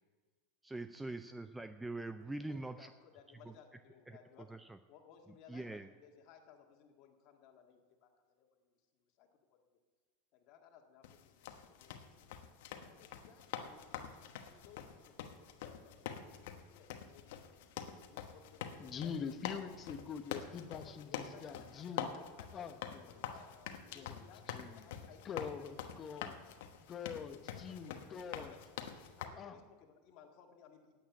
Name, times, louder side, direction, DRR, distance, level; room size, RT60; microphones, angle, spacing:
voice 1, 0.6-2.9 4.5-4.7 5.5-5.9, right 2 dB, 10° right, 10 dB, 0.4 m, -43 dB
voice 2, 2.2-4.6 4.9-9.6 10.3-12.3 12.7-15.2 15.5-16.0 16.5-17.3 18.1-19.3 20.7-24.5 24.7-25.7 26.1-26.2 27.2-28.9 29.2-31.0, left 8 dB, 50° left, 1 dB, 1.8 m, -61 dB
sound 1, 11.0-29.3, left 9 dB, 70° left, 1.1 m, -46 dB
voice 3, 18.8-22.1 22.5-23.2 23.9-24.8 25.2-26.3 26.9-28.5 29.4-29.6, left 6 dB, 30° left, 10 dB, 0.9 m, -45 dB
9.0 x 8.7 x 8.7 m, 1.4 s
supercardioid pair, 120°, 0 cm